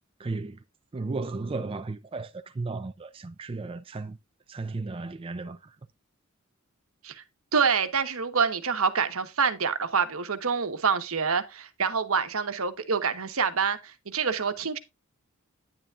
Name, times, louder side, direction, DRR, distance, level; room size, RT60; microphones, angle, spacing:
voice 1, 0.2-0.6 0.9-4.2 4.5-5.8, right 3 dB, 25° right, 0.4 m, -34 dB
voice 2, 7.5-14.8, right 5 dB, 70° right, 1.2 m, -26 dB
10.0 x 9.2 x 2.4 m
head